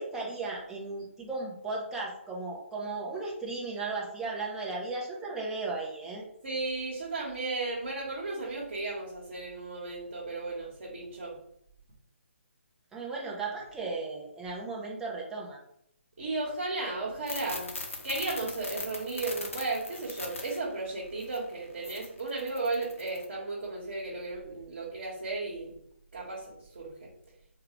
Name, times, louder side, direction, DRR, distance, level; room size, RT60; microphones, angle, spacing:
voice 1, 0.0-6.2 12.9-15.6, right 3 dB, 5° right, -4 dB, 0.8 m, -36 dB
voice 2, 6.4-11.4 16.2-25.7 26.1-27.1, right 3 dB, 55° right, -5 dB, 1.3 m, -35 dB
sound 1, 17.3-20.6 21.2-21.4 21.8-23.3, left 3 dB, 80° left, 1.0 m, -40 dB
4.6 x 2.5 x 3.2 m, 0.70 s
figure-of-eight pair, 150°, 7 cm